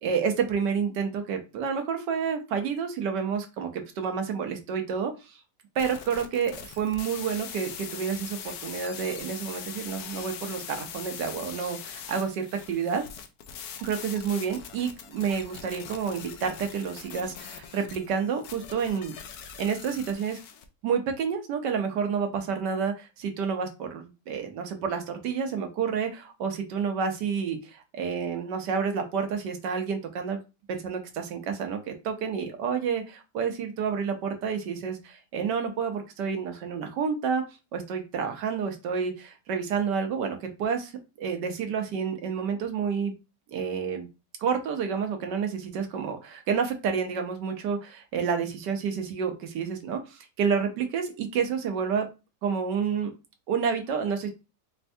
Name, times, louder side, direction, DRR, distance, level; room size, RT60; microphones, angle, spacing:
voice 1, 0.0-5.4 5.7-13.0 13.8-19.1 19.6-20.4 20.8-30.4 30.7-37.4 37.7-40.9 41.2-43.1 43.5-44.1 44.4-52.1 52.4-53.1 53.5-54.3, right 6 dB, 75° right, 5 dB, 1.4 m, -29 dB
sound 1, 5.8-20.6, left 8 dB, 70° left, 1.0 m, -42 dB
4.4 x 3.3 x 2.6 m, 0.28 s
omnidirectional pair, 1.9 m